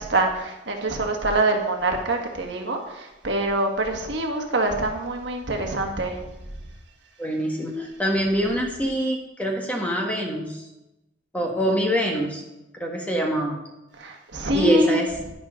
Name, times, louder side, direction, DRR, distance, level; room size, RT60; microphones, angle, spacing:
voice 1, 0.0-6.2 14.0-15.0, right 2 dB, 65° right, 2 dB, 1.6 m, -25 dB
voice 2, 7.2-10.6 11.3-12.4 12.7-13.6 14.5-15.1, equal, 10° left, 0 dB, 1.5 m, -24 dB
11.0 x 10.0 x 3.8 m, 0.94 s
head